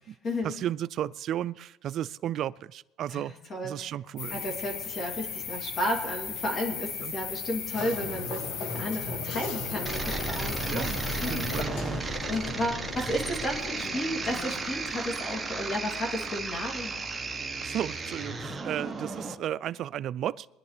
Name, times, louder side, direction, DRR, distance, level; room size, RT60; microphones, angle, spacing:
voice 1, 0.4-3.3 3.6-4.4 7.0-7.1 10.6-11.0 11.3-11.8 17.6-20.5, right 11 dB, 50° right, 17 dB, 0.3 m, -33 dB
voice 2, 3.1-3.9 4.3-10.9 11.2-11.5 11.9-17.0, left 1 dB, 35° left, 1 dB, 2.8 m, -33 dB
sound 1, 4.2-11.6, left 7 dB, 60° left, 1.2 m, -37 dB
sound 2, 7.7-15.1, left 3 dB, 80° left, 1.7 m, -39 dB
sound 3, 9.8-19.3, right 3 dB, 15° right, 1.2 m, -34 dB
23.0 x 10.5 x 3.4 m, 0.97 s
cardioid pair, 120°, 0 cm